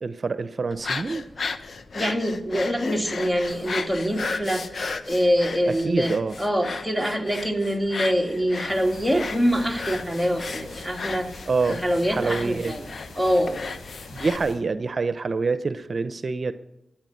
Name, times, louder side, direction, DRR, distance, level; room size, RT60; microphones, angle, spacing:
voice 1, 0.0-1.3 5.7-6.3 11.5-11.8 12.1-12.7 14.1-16.5, right 4 dB, 55° right, 12 dB, 0.6 m, -26 dB
sound 1, 0.7-14.4, left 4 dB, 65° left, 1.0 m, -35 dB
voice 2, 1.9-4.8 5.0-11.3 11.7-12.8 13.2-13.6, equal, 5° left, 3 dB, 2.9 m, -24 dB
sound 2, 8.7-14.6, left 3 dB, 85° left, 4.7 m, -44 dB
13.5 x 8.9 x 9.3 m, 0.88 s
cardioid pair, 45°, 0 cm